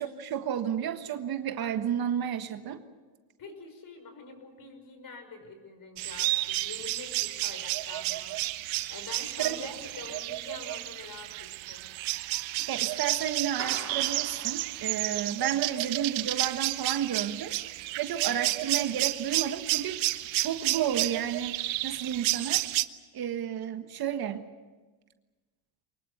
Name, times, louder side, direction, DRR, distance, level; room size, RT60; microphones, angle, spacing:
voice 1, 0.0-2.8 9.2-9.7 12.0-12.1 12.7-17.6 18.0-20.0 20.3-22.6 23.1-24.5, right 9 dB, 50° right, 8 dB, 1.5 m, -32 dB
voice 2, 3.4-8.4 8.9-11.9 15.4-15.8 18.4-18.8, left 4 dB, 45° left, 8 dB, 5.8 m, -46 dB
sound 1, 6.0-22.9, right 18 dB, 70° right, 1.0 m, -31 dB
Clapping, 13.6-15.3, right 5 dB, 30° right, 3.8 m, -42 dB
24.0 x 21.0 x 8.2 m, 1.3 s
cardioid pair, 120°, 49 cm